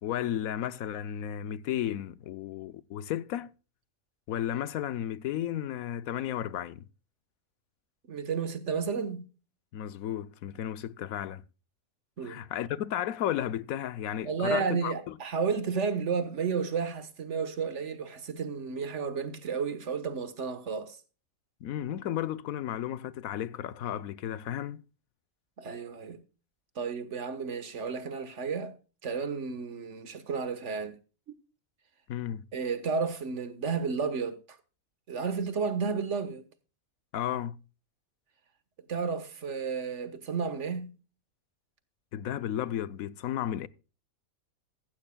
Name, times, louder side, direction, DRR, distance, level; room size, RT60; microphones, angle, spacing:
voice 1, 0.0-3.5 4.3-6.9 9.7-11.4 12.2-15.2 21.6-24.8 32.1-32.4 37.1-37.6 42.1-43.7, left 11 dB, 80° left, 1.1 m, -33 dB
voice 2, 8.1-9.3 12.2-12.4 14.2-21.0 25.6-26.2 26.7-28.8 29.0-31.0 32.5-34.6 35.1-36.4 38.9-41.0, right 5 dB, 60° right, 1.6 m, -32 dB
15.5 x 14.5 x 2.3 m
omnidirectional pair, 1.4 m